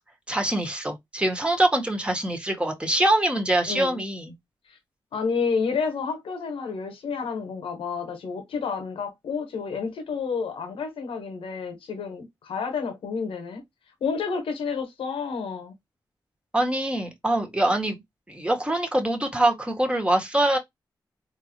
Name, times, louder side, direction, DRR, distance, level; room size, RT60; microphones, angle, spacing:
voice 1, 0.3-4.3 16.5-18.0 18.3-20.6, right 1 dB, 10° right, 1.8 m, -24 dB
voice 2, 3.7-4.0 5.1-13.6 14.0-15.7, left 5 dB, 85° left, 1.2 m, -30 dB
3.8 x 2.9 x 3.0 m
supercardioid pair, 45°, 9 cm